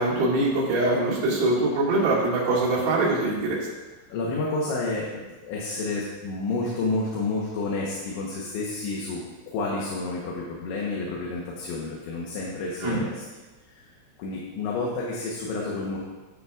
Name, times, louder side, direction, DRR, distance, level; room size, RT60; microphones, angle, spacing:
voice 1, 0.0-3.6 12.8-13.0, right 2 dB, 60° right, -7 dB, 3.6 m, -23 dB
voice 2, 4.1-9.2 9.5-13.2 13.7-13.8 14.2-16.0, left 3 dB, 75° left, -4 dB, 3.4 m, -30 dB
10.0 x 9.6 x 2.4 m, 1.2 s
omnidirectional pair, 5.6 m